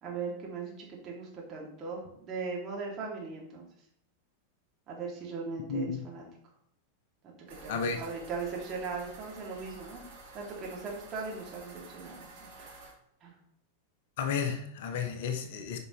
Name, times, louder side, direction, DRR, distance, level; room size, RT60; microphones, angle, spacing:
voice 1, 0.0-3.7 4.9-6.2 7.2-7.3 7.6-10.0 10.3-12.9 13.2-13.3, right 4 dB, 30° right, -3 dB, 2.6 m, -39 dB
voice 2, 5.7-6.0 7.7-8.0 14.2-15.8, left 6 dB, 55° left, 7 dB, 0.9 m, -32 dB
sound 1, 7.5-12.9, right 3 dB, 55° right, 2.9 m, -50 dB
9.7 x 5.2 x 3.2 m, 0.73 s
figure-of-eight pair, 90°, 0 cm